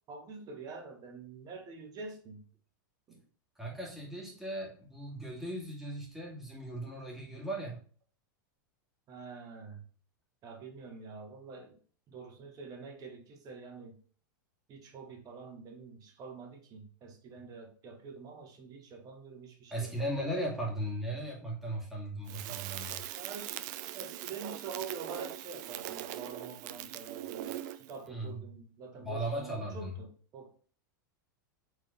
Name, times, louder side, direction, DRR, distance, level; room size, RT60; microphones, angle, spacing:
voice 1, 0.1-2.4 3.1-3.2 9.1-9.8 10.4-11.8 12.1-14.0 14.7-20.4 23.1-23.6 23.9-30.5, right 5 dB, 35° right, 2 dB, 1.6 m, -46 dB
voice 2, 3.6-7.8 19.7-23.0 28.1-28.4 29.0-29.9, right 1 dB, 5° right, -3 dB, 2.2 m, -37 dB
Crackle, 22.3-28.0, right 13 dB, 60° right, 0.5 m, -41 dB
4.8 x 3.8 x 5.3 m, 0.43 s
hypercardioid pair, 125°, 11 cm